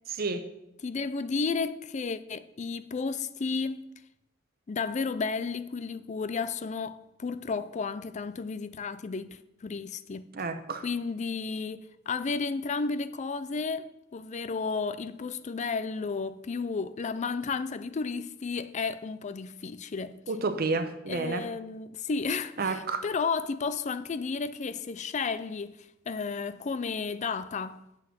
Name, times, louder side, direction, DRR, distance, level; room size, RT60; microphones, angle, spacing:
voice 1, 0.1-0.5 10.3-10.8 20.3-21.5 22.6-23.0, right 3 dB, 50° right, 0.9 m, -30 dB
voice 2, 0.8-3.9 4.7-10.3 10.8-20.2 21.1-27.8, left 4 dB, 35° left, 0.4 m, -33 dB
7.6 x 6.0 x 7.4 m
head